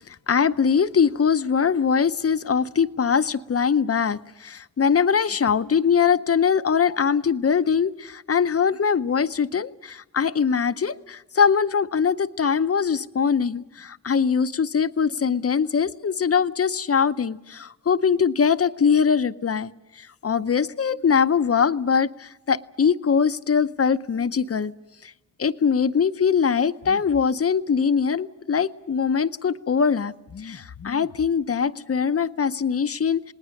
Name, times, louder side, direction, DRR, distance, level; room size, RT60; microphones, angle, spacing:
voice 1, 0.1-24.7 25.0-25.1 25.4-33.3, left 6 dB, 50° left, 13 dB, 0.7 m, -22 dB
29.0 x 19.5 x 6.5 m, 0.95 s
wide cardioid pair, 110°, 31 cm